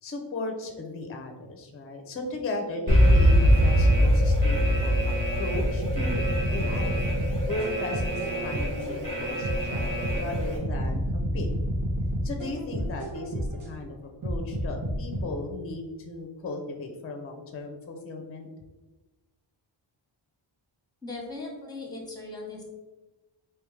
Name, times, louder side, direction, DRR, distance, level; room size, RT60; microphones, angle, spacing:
voice 1, 0.0-6.2 6.5-7.0 7.5-11.5 12.2-18.5, left 3 dB, 30° left, 4 dB, 0.5 m, -36 dB
Alarm, 2.9-10.6, equal, 40° right, 1.1 m, -23 dB
sound 1, 5.5-8.9 9.4-13.7 14.2-15.2, equal, 90° right, 1.4 m, -29 dB
voice 2, 21.0-22.6, left 2 dB, 10° left, -1 dB, 1.0 m, -38 dB
3.5 x 3.0 x 3.2 m, 1.1 s
wide cardioid pair, 100°, 50 cm